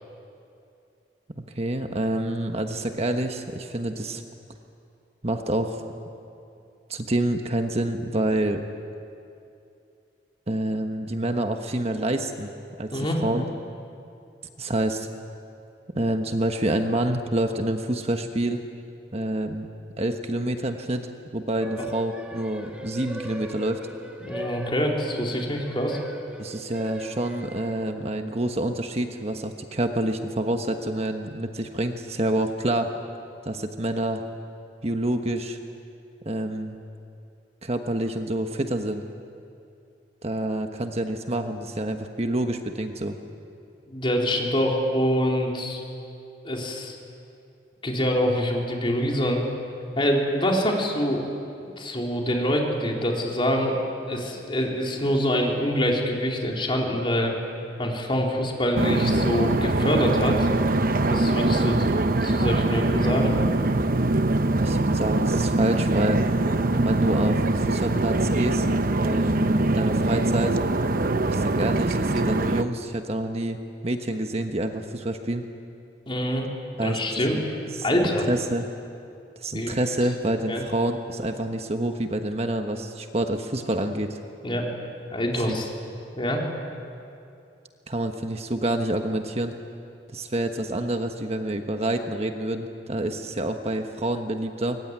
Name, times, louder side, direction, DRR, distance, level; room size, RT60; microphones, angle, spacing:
voice 1, 1.4-4.2 5.2-5.8 6.9-8.6 10.5-12.5 12.8-13.4 14.6-15.1 15.9-18.6 19.1-19.7 20.0-23.9 26.4-32.9 33.4-34.2 34.8-35.6 36.2-36.8 37.6-39.0 40.2-43.2 64.6-66.2 66.7-68.7 69.0-70.6 71.3-73.6 73.8-75.5 76.8-77.0 77.3-77.4 77.7-78.6 79.4-84.2 85.3-85.6 87.9-89.5 90.1-94.8, right 1 dB, 35° right, 6 dB, 1.3 m, -27 dB
sound 1, 21.6-28.2, equal, 5° right, 2.1 m, -39 dB
voice 2, 24.2-26.0 43.9-45.8 46.4-47.0 47.8-49.5 50.0-51.2 51.8-53.8 54.1-57.4 57.8-60.5 61.1-61.9 62.2-63.4 76.1-76.5 76.7-77.4 77.8-78.3 79.5-79.7 80.5-80.6 84.4-84.7 85.1-85.7 86.2-86.4, equal, 30° left, 0 dB, 4.1 m, -25 dB
sound 2, 58.8-72.6, right 2 dB, 55° right, 0.9 m, -23 dB
25.0 x 22.5 x 9.8 m, 2.6 s
head